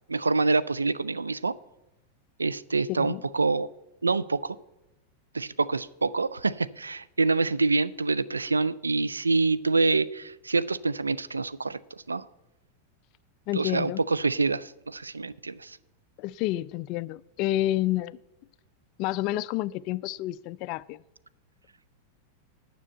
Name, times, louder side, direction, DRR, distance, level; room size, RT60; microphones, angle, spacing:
voice 1, 0.1-1.5 2.4-3.7 4.0-4.6 5.3-12.2 13.5-15.8, right 3 dB, 80° right, 0.4 m, -26 dB
voice 2, 2.9-3.2 13.5-14.0 16.2-18.2 19.0-21.0, left 15 dB, 40° left, 0.3 m, -29 dB
9.7 x 6.3 x 7.9 m
figure-of-eight pair, 90°, 0 cm